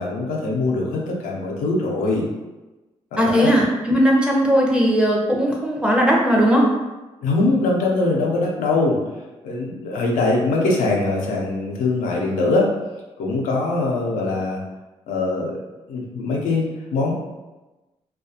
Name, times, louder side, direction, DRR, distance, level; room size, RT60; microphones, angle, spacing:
voice 1, 0.0-2.3 3.1-3.5 7.2-9.0 9.4-12.7 13.2-14.6 15.1-15.6 15.9-16.7 16.9-17.1, left 2 dB, 90° left, -2 dB, 0.5 m, -22 dB
voice 2, 3.2-6.7, equal, 5° right, -2 dB, 0.7 m, -18 dB
2.3 x 2.2 x 2.7 m, 1.1 s
supercardioid pair, 55°, 14 cm